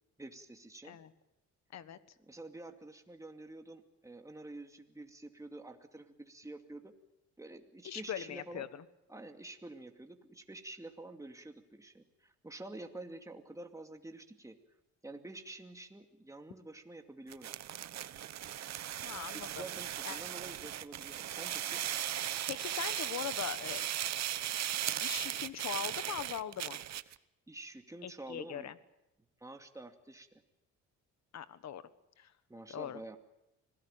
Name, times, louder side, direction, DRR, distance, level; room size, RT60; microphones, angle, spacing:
voice 1, 0.2-1.0 2.3-6.9 7.4-8.7 9.1-14.6 15.0-17.5 19.2-21.8 27.5-28.7 29.4-30.4 32.5-33.2, right 2 dB, 10° right, 5 dB, 2.4 m, -48 dB
voice 2, 7.8-8.8 19.0-19.6 20.0-20.2 22.5-23.9 25.0-26.8 28.0-28.8 31.3-31.8 32.2-32.3 32.7-33.0, left 9 dB, 60° left, 14 dB, 1.5 m, -41 dB
sound 1, 17.3-27.2, right 11 dB, 60° right, 0.9 m, -37 dB
25.5 x 17.5 x 9.0 m, 0.91 s
cardioid pair, 90°, 30 cm